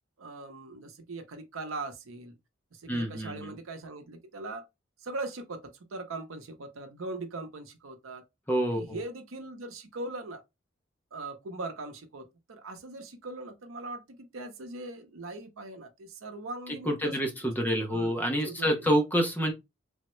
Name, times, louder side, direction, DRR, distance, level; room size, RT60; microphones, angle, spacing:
voice 1, 0.2-2.3 2.7-4.7 5.0-8.2 8.7-10.4 11.1-18.8, right 2 dB, 85° right, 0.7 m, -40 dB
voice 2, 2.9-3.6 8.5-9.0 16.9-19.5, equal, 10° left, 0.6 m, -27 dB
3.4 x 2.1 x 3.0 m
head